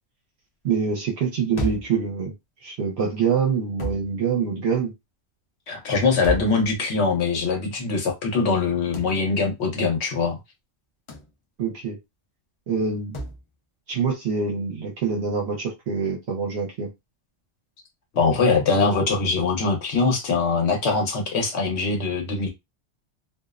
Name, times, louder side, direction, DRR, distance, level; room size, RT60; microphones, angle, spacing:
voice 1, 0.6-2.3 2.6-4.9 11.6-12.0 12.7-13.2 13.9-16.9, right 6 dB, 70° right, 0.9 m, -25 dB
sound 1, 1.6-2.0 3.8-4.1 6.2-6.6 8.9-9.2 11.1-11.3 13.1-13.4, right 1 dB, 50° left, 0.3 m, -30 dB
voice 2, 5.7-10.4 18.1-22.5, left 4 dB, 70° left, 1.1 m, -22 dB
2.5 x 2.0 x 2.3 m
omnidirectional pair, 1.2 m